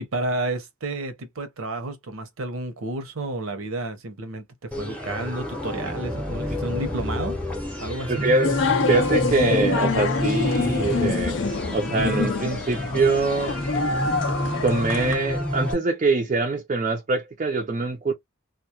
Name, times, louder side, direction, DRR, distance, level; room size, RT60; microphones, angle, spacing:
voice 1, 0.0-7.4 7.8-8.3, right 2 dB, 80° right, 0.7 m, -31 dB
sound 1, 4.7-15.7, left 1 dB, 5° left, 0.7 m, -29 dB
voice 2, 8.1-8.6 8.9-11.4 11.7-13.6 14.6-18.1, right 3 dB, 35° right, 0.4 m, -24 dB
sound 2, 8.4-15.2, left 4 dB, 60° left, 0.4 m, -26 dB
2.2 x 2.1 x 2.7 m
head